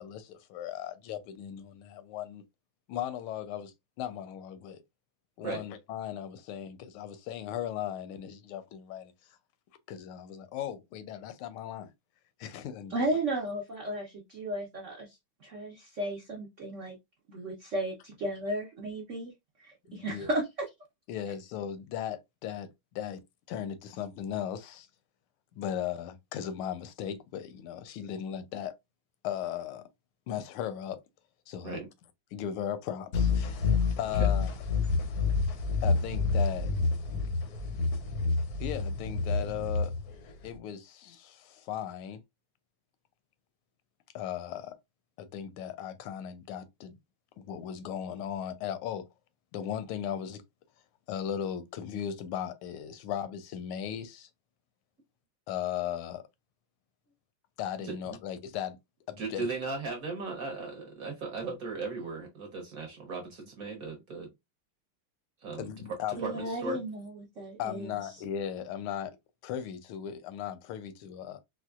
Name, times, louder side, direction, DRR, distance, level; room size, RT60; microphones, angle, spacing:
voice 1, 0.0-2.4 2.9-4.8 5.4-9.4 9.9-11.9 12.4-13.0 19.9-20.3 21.1-23.2 23.5-24.9 25.6-28.7 29.2-29.8 30.3-31.0 31.5-31.8 32.3-34.5 35.8-36.7 38.6-39.9 40.4-42.2 44.1-44.8 45.2-47.0 47.4-49.0 49.5-50.4 51.1-54.3 55.5-56.2 57.6-58.8 59.1-59.5 65.6-66.2 67.6-69.2 69.4-71.4, left 9 dB, 90° left, 1.5 m, -37 dB
voice 2, 12.9-15.1 15.4-17.0 17.3-19.3 19.6-20.5 66.2-68.0, right 1 dB, 75° right, 0.6 m, -34 dB
sound 1, 33.1-40.5, left 4 dB, 70° left, 0.9 m, -28 dB
voice 3, 59.2-64.3 65.4-65.7 66.2-66.8, right 4 dB, 55° right, 1.0 m, -37 dB
4.3 x 2.2 x 2.3 m
omnidirectional pair, 2.3 m